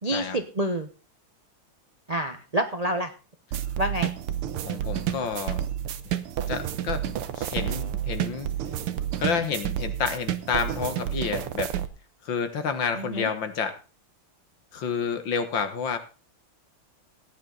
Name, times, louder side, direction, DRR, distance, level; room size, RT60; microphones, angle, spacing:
voice 1, 0.0-0.9 2.1-3.1 3.8-4.1 12.9-13.3, right 1 dB, 45° right, 6 dB, 0.4 m, -28 dB
sound 1, 3.5-11.9, right 11 dB, 85° right, 1.8 m, -30 dB
voice 2, 4.7-5.6 6.5-8.5 9.2-11.7 12.2-13.8 14.7-16.0, left 6 dB, 60° left, 9 dB, 2.1 m, -29 dB
17.0 x 10.0 x 3.9 m, 0.34 s
omnidirectional pair, 2.4 m